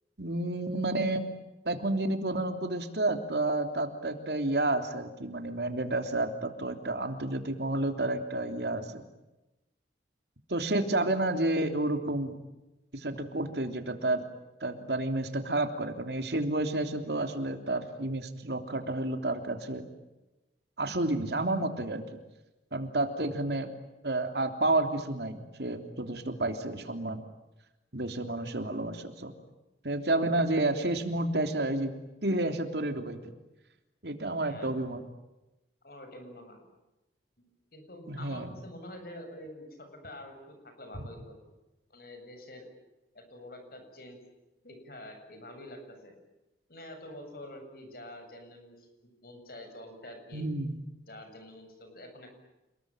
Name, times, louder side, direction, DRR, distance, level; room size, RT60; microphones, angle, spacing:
voice 1, 0.2-1.3 1.6-9.0 10.5-12.3 12.9-14.2 14.6-19.9 20.8-22.0 22.7-23.7 24.0-27.2 27.9-29.3 29.8-31.9 32.2-33.2 34.0-35.0 38.1-38.5 50.3-50.7, right 2 dB, 70° right, 6 dB, 3.3 m, -30 dB
voice 2, 35.8-36.6 37.4-41.4 41.9-42.7 43.1-44.2 44.6-46.1 46.7-50.5 51.1-52.4, left 1 dB, 55° left, 6 dB, 7.7 m, -47 dB
29.0 x 21.5 x 9.1 m, 1.0 s
head